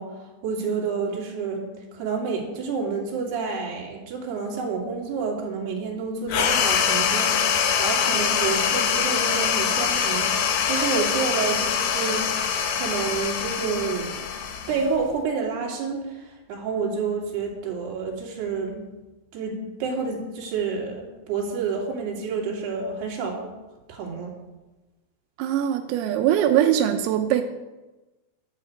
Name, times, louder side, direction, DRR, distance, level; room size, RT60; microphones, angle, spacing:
voice 1, 0.0-10.3 10.7-12.4 12.7-18.9 19.3-23.6 23.9-24.3, right 5 dB, 55° right, -1 dB, 4.5 m, -29 dB
sound 1, 6.3-15.2, left 7 dB, 75° left, 2.3 m, -24 dB
voice 2, 25.4-27.4, right 10 dB, 90° right, 5 dB, 3.6 m, -21 dB
11.5 x 9.4 x 7.9 m, 1.1 s
omnidirectional pair, 6.0 m